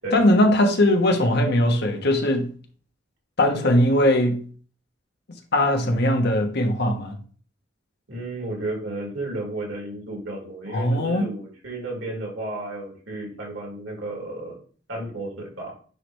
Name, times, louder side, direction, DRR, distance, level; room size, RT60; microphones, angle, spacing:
voice 1, 0.1-2.5 3.4-4.4 5.5-7.2 10.7-11.2, left 1 dB, 60° left, 1.0 m, -20 dB
voice 2, 8.1-14.6 14.9-15.7, right 2 dB, 85° right, 2.7 m, -33 dB
9.5 x 3.2 x 3.1 m
head